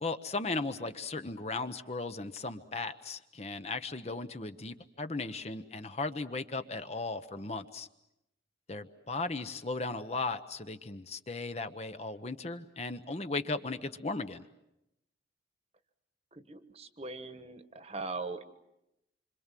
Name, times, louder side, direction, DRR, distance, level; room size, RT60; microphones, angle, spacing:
voice 1, 0.0-7.9 8.7-14.4, left 3 dB, 35° left, 9 dB, 0.9 m, -36 dB
voice 2, 16.3-18.4, right 3 dB, 35° right, 10 dB, 1.3 m, -40 dB
26.5 x 26.0 x 7.5 m, 0.86 s
head